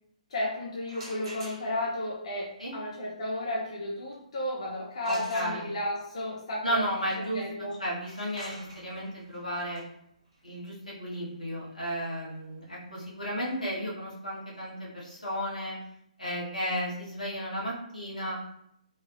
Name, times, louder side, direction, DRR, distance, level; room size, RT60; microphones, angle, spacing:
voice 1, 0.3-6.8 7.2-7.8, left 1 dB, 50° left, -4 dB, 0.5 m, -33 dB
sound 1, 0.8-2.0 5.0-6.0 7.9-13.6, right 1 dB, 40° right, 0.9 m, -48 dB
voice 2, 5.0-5.8 6.6-7.4 7.8-9.8 10.4-15.8 16.2-18.4, equal, 90° left, -6 dB, 1.2 m, -33 dB
3.3 x 2.2 x 2.5 m, 0.75 s
figure-of-eight pair, 130°, 4 cm